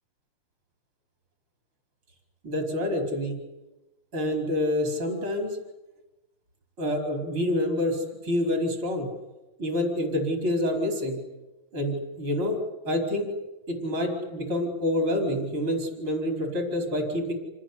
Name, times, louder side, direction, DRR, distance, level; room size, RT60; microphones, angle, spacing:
voice 1, 2.4-3.4 4.1-5.6 6.8-9.1 9.6-11.2 11.7-12.6 12.9-13.3 13.7-17.3, left 1 dB, 75° right, 2 dB, 5.6 m, -27 dB
27.5 x 19.5 x 9.9 m, 1.0 s
omnidirectional pair, 2.3 m